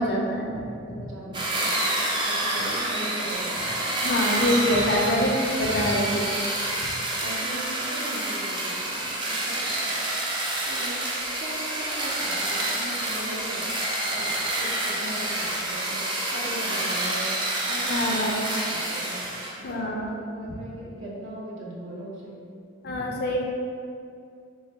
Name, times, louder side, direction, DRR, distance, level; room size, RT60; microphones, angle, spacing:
voice 1, 0.0-0.6 0.9-1.0 4.0-6.3 6.8-6.9 17.9-18.4 19.6-20.1 22.8-23.4, left 1 dB, 50° left, -1 dB, 0.4 m, -25 dB
voice 2, 0.5-1.9 2.2-4.0 7.2-9.0 9.3-9.9 10.7-11.0 11.4-13.6 14.1-14.3 14.6-16.0 16.3-17.4 17.6-19.2 19.6-22.4, right 1 dB, 70° right, -5 dB, 0.7 m, -38 dB
sound 1, 1.3-19.6, right 1 dB, 20° right, 0.3 m, -28 dB
3.1 x 2.2 x 4.2 m, 2.4 s
head